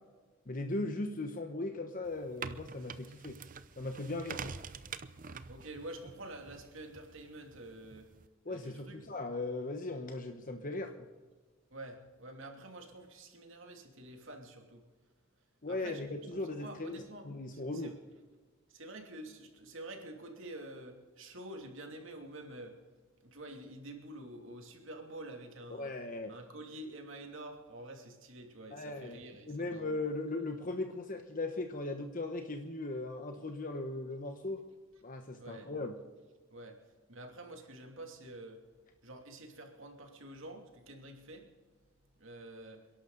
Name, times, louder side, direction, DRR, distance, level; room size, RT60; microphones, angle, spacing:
voice 1, 0.5-3.4 3.8-4.5 8.5-11.1 15.6-17.0 17.3-17.9 25.7-26.3 28.7-29.2 29.5-34.6 35.0-36.0, left 2 dB, 40° left, 5 dB, 1.1 m, -38 dB
sound 1, 2.0-8.3, right 5 dB, 40° right, 0.7 m, -46 dB
voice 2, 5.5-8.1 8.5-9.0 11.7-14.8 15.7-16.0 16.3-18.0 18.7-22.8 23.2-26.0 26.3-29.9 35.4-35.7 36.5-38.6 39.0-41.5 42.2-42.8, right 1 dB, 65° right, 3 dB, 2.8 m, -48 dB
28.5 x 11.5 x 4.0 m, 1.4 s
head